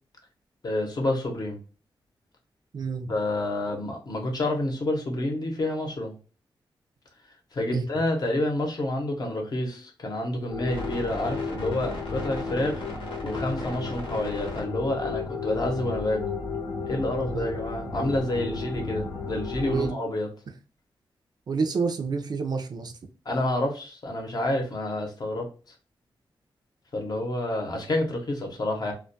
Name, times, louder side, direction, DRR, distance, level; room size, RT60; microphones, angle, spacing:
voice 1, 0.6-1.6 3.1-6.1 7.5-12.8 13.2-16.2 16.9-20.3 23.2-25.5 26.9-28.9, left 1 dB, 50° left, 2 dB, 0.7 m, -28 dB
voice 2, 2.7-3.1 7.7-7.8 17.3-17.5 19.7-19.9 21.5-22.9, right 5 dB, 50° right, 6 dB, 0.4 m, -28 dB
sound 1, 10.5-19.9, left 4 dB, 80° left, 0.8 m, -33 dB
2.2 x 2.1 x 2.6 m, 0.36 s
wide cardioid pair, 100°, 9 cm